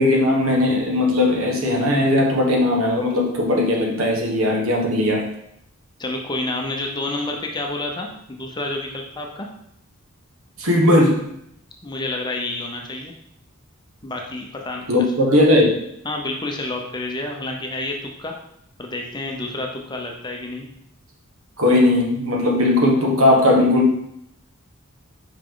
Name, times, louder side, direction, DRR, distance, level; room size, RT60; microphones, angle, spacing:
voice 1, 0.0-5.3 10.6-11.2 14.9-15.8 21.6-23.9, left 1 dB, 75° right, 0 dB, 1.4 m, -18 dB
voice 2, 6.0-9.5 11.8-13.1 14.0-14.9 16.0-18.3 18.8-20.7, left 2 dB, 20° left, 1 dB, 0.8 m, -29 dB
5.6 x 5.0 x 3.8 m, 0.72 s
head